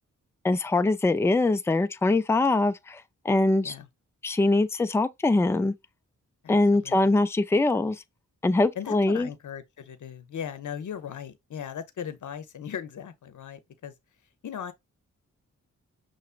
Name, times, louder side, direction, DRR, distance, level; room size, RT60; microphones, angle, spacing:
voice 1, 0.4-3.7 4.2-5.7 6.5-8.0 8.4-9.3, left 2 dB, 10° left, 0.4 m, -23 dB
voice 2, 6.4-7.0 8.7-13.9 14.4-14.7, left 8 dB, 70° left, 0.8 m, -38 dB
5.6 x 3.1 x 2.4 m
cardioid pair, 60°, 31 cm